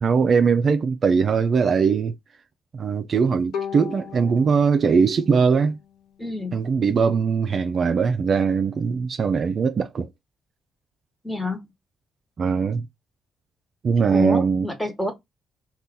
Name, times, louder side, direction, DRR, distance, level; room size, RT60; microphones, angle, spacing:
voice 1, 0.0-2.1 2.7-5.8 6.5-10.1 12.4-12.9 13.8-14.7, right 5 dB, 50° right, 0.3 m, -21 dB
Bowed string instrument, 3.5-6.6, left 7 dB, 85° left, 1.1 m, -37 dB
voice 2, 6.2-6.5 11.2-11.6 14.1-15.1, left 1 dB, 5° left, 1.1 m, -28 dB
2.7 x 2.3 x 3.6 m
cardioid pair, 90°, 0 cm